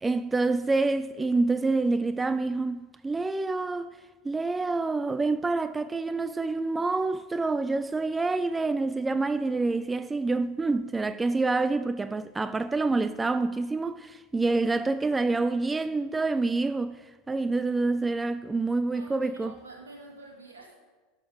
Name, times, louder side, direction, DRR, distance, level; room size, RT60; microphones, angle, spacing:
voice 1, 0.0-3.9 4.2-19.5, right 3 dB, 15° right, 0.3 m, -27 dB
voice 2, 18.9-20.8, right 2 dB, 85° right, 2.0 m, -47 dB
11.0 x 6.9 x 5.0 m
hypercardioid pair, 85°, 0 cm